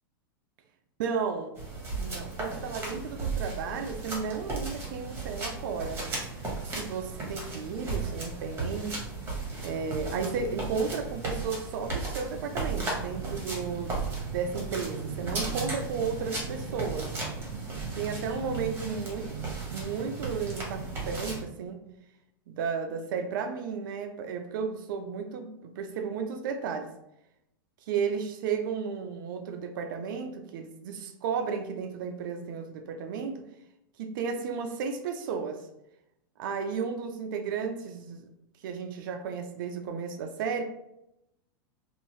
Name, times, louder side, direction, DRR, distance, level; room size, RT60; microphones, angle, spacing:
voice 1, 1.0-1.6 2.0-6.0 6.7-9.0 9.6-14.0 14.3-17.1 17.9-19.4 19.7-21.8 22.5-26.9 27.8-33.4 34.0-35.6 36.4-38.3 38.6-40.6, right 6 dB, 65° right, 6 dB, 0.4 m, -33 dB
sound 1, 1.6-21.4, right 3 dB, 20° right, 1.1 m, -35 dB
2.6 x 2.4 x 3.0 m, 0.83 s
hypercardioid pair, 125°, 12 cm